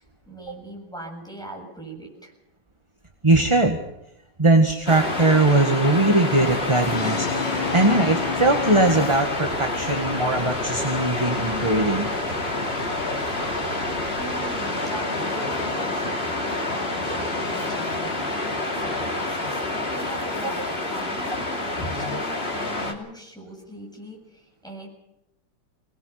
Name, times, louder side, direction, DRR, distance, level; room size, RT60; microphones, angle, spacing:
voice 1, 0.0-2.3 14.2-18.2 18.6-24.9, right 1 dB, ahead, 0 dB, 7.7 m, -40 dB
voice 2, 3.2-3.8 4.4-12.1 20.4-20.5, right 2 dB, 15° right, 4 dB, 1.7 m, -20 dB
Waves surf, 4.9-22.9, left 2 dB, 30° left, 3.0 m, -28 dB
Brass instrument, 5.8-9.7, left 8 dB, 75° left, 1.8 m, -32 dB
sound 1, 7.6-14.6, right 1 dB, 50° right, 5.3 m, -39 dB
25.0 x 20.5 x 5.9 m, 0.86 s
omnidirectional pair, 2.1 m